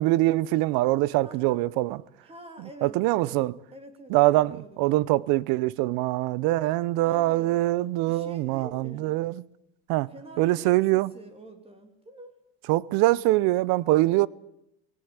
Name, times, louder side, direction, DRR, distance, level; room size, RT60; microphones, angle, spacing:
voice 1, 0.0-2.0 2.8-3.5 4.1-9.4 9.9-10.1 10.4-11.1 12.7-14.3, right 18 dB, 75° right, 0.8 m, -23 dB
voice 2, 1.2-1.6 2.2-3.4 3.7-4.8 7.0-7.5 8.1-9.1 10.1-12.3 14.1-14.3, right 1 dB, 15° right, 2.8 m, -46 dB
19.5 x 17.5 x 9.6 m
cardioid pair, 140°, 36 cm